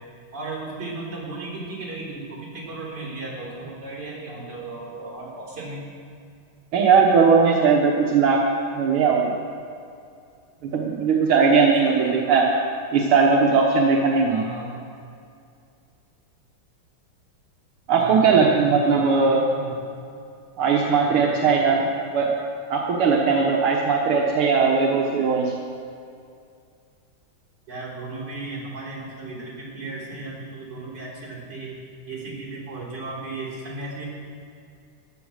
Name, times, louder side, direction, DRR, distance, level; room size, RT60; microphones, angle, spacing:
voice 1, 0.3-5.8 11.6-12.2 14.3-14.8 18.0-19.7 21.0-21.8 27.7-31.7 32.1-34.1, right 2 dB, 55° right, -5 dB, 4.2 m, -35 dB
voice 2, 6.7-8.4 8.7-9.4 10.6-12.5 12.9-14.4 17.9-19.4 20.6-21.8 22.1-22.3 22.7-25.5, right 5 dB, 85° right, -1 dB, 2.0 m, -19 dB
14.5 x 10.0 x 6.4 m, 2.4 s
omnidirectional pair, 2.3 m